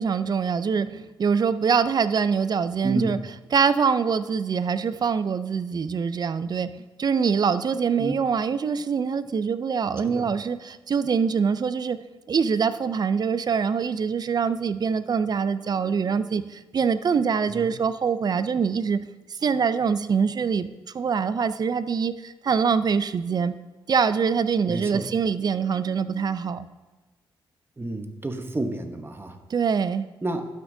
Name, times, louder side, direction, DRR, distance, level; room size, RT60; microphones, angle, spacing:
voice 1, 0.0-3.2 3.5-6.7 7.0-12.0 12.3-19.0 19.3-20.7 20.9-23.6 23.9-26.7 29.5-30.1, right 6 dB, 45° right, 13 dB, 0.4 m, -24 dB
voice 2, 2.8-3.2 7.9-8.1 10.0-10.3 17.5-17.7 24.7-25.1 27.8-29.4 30.2-30.5, right 2 dB, 25° right, 6 dB, 1.0 m, -30 dB
12.0 x 6.0 x 2.7 m, 1.2 s
cardioid pair, 65°, 9 cm